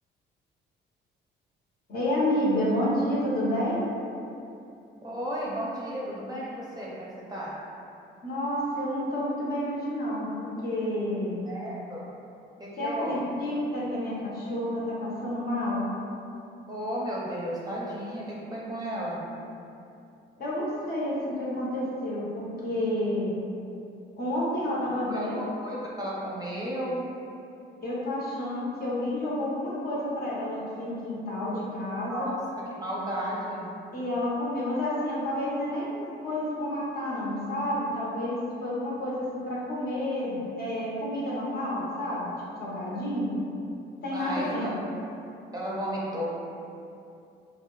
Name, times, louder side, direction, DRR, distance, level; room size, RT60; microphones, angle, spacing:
voice 1, 1.9-3.9 8.2-11.4 12.8-15.9 20.4-23.3 24.2-25.4 27.8-32.3 33.9-42.3 42.6-43.3 44.0-44.7, left 1 dB, 50° left, -6 dB, 0.8 m, -30 dB
voice 2, 5.0-7.5 11.4-12.1 12.6-13.1 16.7-19.2 25.1-27.0 32.1-32.4 32.8-33.7 44.1-44.7 45.5-46.3, equal, 20° right, -6 dB, 0.5 m, -34 dB
2.6 x 2.0 x 2.9 m, 2.7 s
cardioid pair, 90°, 20 cm